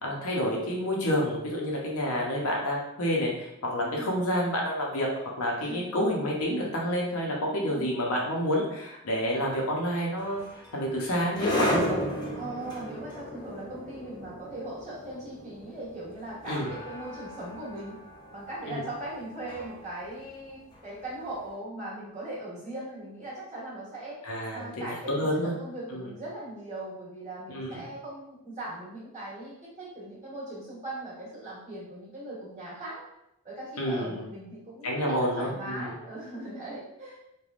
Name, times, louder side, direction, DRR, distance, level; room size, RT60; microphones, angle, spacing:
voice 1, 0.0-5.1 5.4-10.4 10.7-12.0 16.5-16.7 18.7-18.8 24.2-25.5 25.9-26.1 27.5-27.8 33.8-34.2 34.8-35.9, equal, 75° left, -2 dB, 0.7 m, -29 dB
voice 2, 3.8-4.1 5.6-5.8 7.5-7.9 12.4-18.0 18.3-24.2 24.5-33.0 33.4-37.2, right 1 dB, 30° right, -8 dB, 1.2 m, -39 dB
sound 1, 10.2-21.3, equal, 20° left, 0.4 m, -35 dB
3.3 x 2.3 x 2.4 m, 0.84 s
head